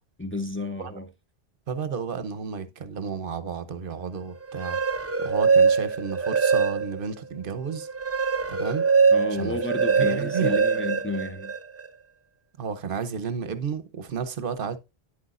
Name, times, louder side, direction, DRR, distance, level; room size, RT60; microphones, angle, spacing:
voice 1, 0.2-1.1 9.1-11.5, left 2 dB, 15° left, 0.6 m, -31 dB
voice 2, 1.7-4.8 5.2-7.9 8.5-8.9 9.3-9.6 10.0-10.6 12.6-14.8, right 6 dB, 55° right, 1.0 m, -32 dB
sound 1, 4.4-7.1 7.5-11.9, right 5 dB, 25° right, 0.3 m, -23 dB
10.0 x 8.1 x 2.5 m
omnidirectional pair, 1.1 m